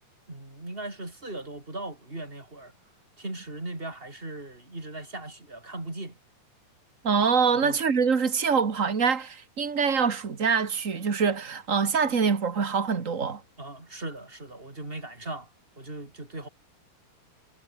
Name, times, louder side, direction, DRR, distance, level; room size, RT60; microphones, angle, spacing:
voice 1, 0.3-2.7 3.2-6.1 7.6-7.8 13.6-15.5 15.8-16.5, right 2 dB, 15° right, 4.6 m, -38 dB
voice 2, 7.0-13.4, right 6 dB, 65° right, 0.7 m, -24 dB
omnidirectional pair, 4.5 m